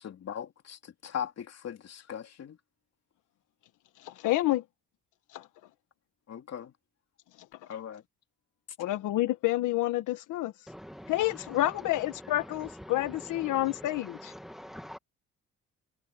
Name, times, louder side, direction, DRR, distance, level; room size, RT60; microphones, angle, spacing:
voice 1, 0.3-2.6 6.3-6.7 7.7-8.0, left 8 dB, 55° left, 3.3 m, -39 dB
voice 2, 4.0-4.6 5.3-5.5 8.8-10.5 11.1-14.3, left 16 dB, 90° left, 1.5 m, -29 dB
voice 3, 14.4-15.0, equal, ahead, 1.5 m, -44 dB
cardioid pair, 90°, 30 cm